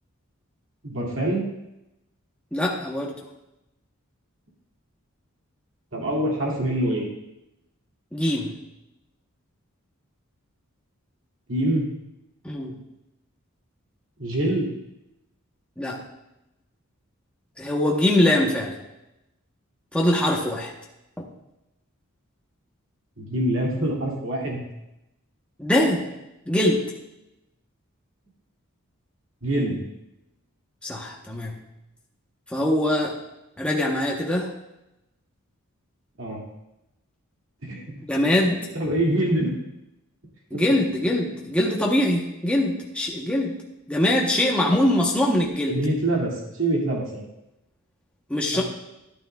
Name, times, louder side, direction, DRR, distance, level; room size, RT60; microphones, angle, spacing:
voice 1, 0.8-1.4 5.9-7.1 11.5-11.9 14.2-14.7 23.2-24.6 29.4-29.8 36.2-36.4 37.6-37.8 38.7-39.5 40.5-40.6 45.7-47.2 48.5-48.6, right 1 dB, 65° right, -2 dB, 2.4 m, -25 dB
voice 2, 2.5-3.1 8.1-8.6 12.4-12.8 15.8-16.0 17.6-18.7 19.9-20.7 25.6-26.1 26.5-26.8 30.8-31.6 32.5-33.2 33.6-34.5 38.1-38.7 40.5-43.6 43.9-45.8 48.3-48.6, left 1 dB, 5° left, -2 dB, 0.9 m, -23 dB
12.5 x 11.5 x 2.3 m, 0.91 s
head